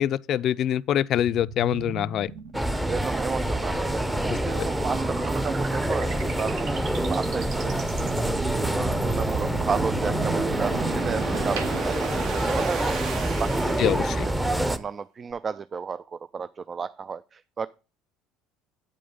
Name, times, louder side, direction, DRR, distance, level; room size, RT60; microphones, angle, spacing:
voice 1, 0.0-2.3 4.6-4.7 13.8-14.3, left 11 dB, 55° left, 0.3 m, -25 dB
sound 1, 1.1-14.5, right 4 dB, 60° right, 1.6 m, -35 dB
sound 2, 2.5-14.8, right 1 dB, 5° right, 0.8 m, -27 dB
voice 2, 2.9-4.0 4.3-7.8 8.2-13.0 13.4-13.9 14.2-17.7, right 5 dB, 35° right, 0.3 m, -33 dB
sound 3, 7.0-8.8 9.2-10.7 11.1-13.2 13.5-13.8, right 7 dB, 85° right, 1.0 m, -44 dB
8.7 x 5.2 x 5.4 m
hypercardioid pair, 75°, 0 cm